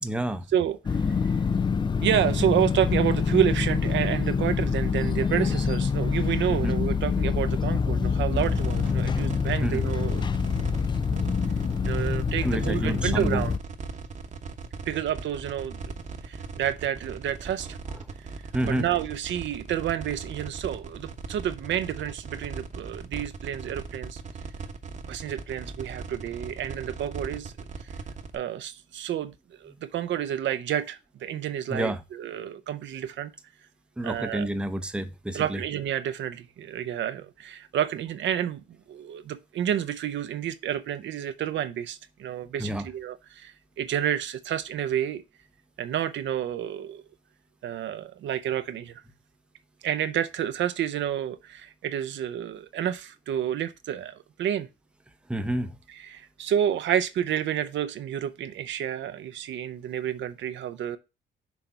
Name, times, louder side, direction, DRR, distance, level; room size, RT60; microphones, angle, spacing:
voice 1, 0.0-0.4 6.5-6.8 9.6-9.8 12.4-13.4 18.5-18.9 31.7-32.0 34.0-35.6 42.6-42.9 55.3-55.8, right 1 dB, 5° right, 0.7 m, -29 dB
voice 2, 0.5-1.0 1.2-1.3 2.0-10.4 11.9-13.5 14.9-15.8 16.2-17.8 18.7-24.2 25.1-27.5 28.3-33.3 34.0-34.5 35.3-45.2 45.8-47.0 47.6-49.0 49.8-54.7 55.9-61.0, right 10 dB, 70° right, 0.6 m, -29 dB
sound 1, 0.8-13.6, left 5 dB, 25° left, 0.4 m, -26 dB
sound 2, 8.4-28.4, right 4 dB, 35° right, 1.0 m, -38 dB
6.2 x 3.4 x 5.5 m
cardioid pair, 90°, 20 cm